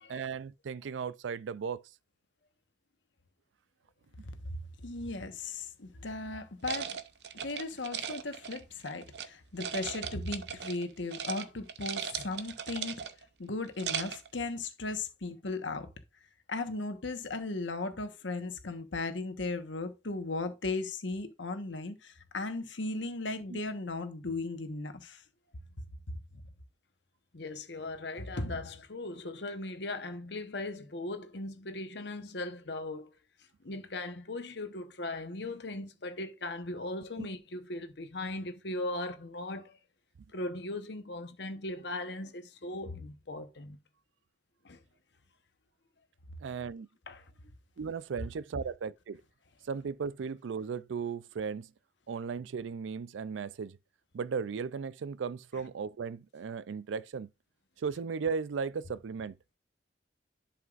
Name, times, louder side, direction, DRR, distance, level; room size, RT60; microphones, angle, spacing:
voice 1, 0.1-1.8 23.5-23.6 37.2-37.3 46.4-46.9 47.8-49.2 49.7-51.7 52.1-53.8 54.1-57.3 57.8-59.6, right 5 dB, 85° right, 0.4 m, -36 dB
voice 2, 4.4-7.0 7.4-13.0 13.4-15.9 16.5-25.2 26.1-26.2, left 3 dB, 85° left, 1.2 m, -36 dB
sound 1, 6.6-9.3 9.6-10.8 11.1-11.4 11.7-13.2 13.6-14.3, right 8 dB, 65° right, 0.7 m, -38 dB
voice 3, 27.3-33.1 33.6-39.8 40.3-43.8 44.6-44.8 47.1-47.2, left 2 dB, 65° left, 1.0 m, -38 dB
11.0 x 5.7 x 2.5 m
head